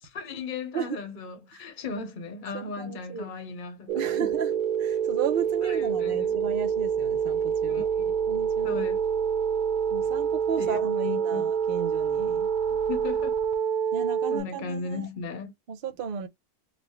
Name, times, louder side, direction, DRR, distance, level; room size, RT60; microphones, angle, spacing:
voice 1, 0.1-4.4 5.6-6.4 7.7-8.1 8.6-9.0 10.6-11.5 12.7-13.4 13.8-13.9 14.3-15.5, left 4 dB, 40° left, 1.0 m, -37 dB
voice 2, 2.5-3.3 3.9-4.5 4.8-7.9 8.3-8.8 9.9-12.5 13.9-15.1 15.7-16.3, right 7 dB, 50° right, 0.7 m, -34 dB
sound 1, 3.9-14.4, right 7 dB, 85° right, 1.1 m, -27 dB
4.0 x 2.2 x 3.1 m
omnidirectional pair, 1.6 m